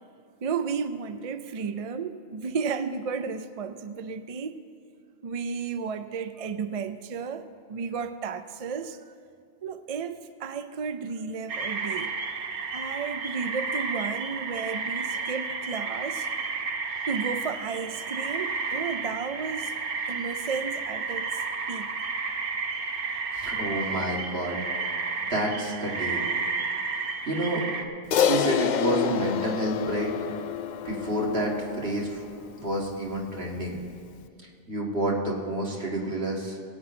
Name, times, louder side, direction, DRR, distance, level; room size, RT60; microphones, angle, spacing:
voice 1, 0.4-4.6 5.2-9.0 9.6-12.2 12.7-16.3 17.1-19.7 20.1-21.4 21.7-21.9, right 5 dB, 45° right, 10 dB, 0.5 m, -33 dB
sound 1, 11.5-27.8, right 4 dB, 60° right, 1.1 m, -32 dB
voice 2, 23.3-24.6 25.2-26.2 27.3-27.8 28.2-30.1 30.8-32.2 32.6-33.8 34.7-36.6, right 1 dB, 80° right, -2 dB, 2.3 m, -29 dB
Crash cymbal, 28.1-32.7, left 9 dB, 55° left, 0.5 m, -28 dB
21.0 x 9.0 x 4.3 m, 2.3 s
omnidirectional pair, 1.0 m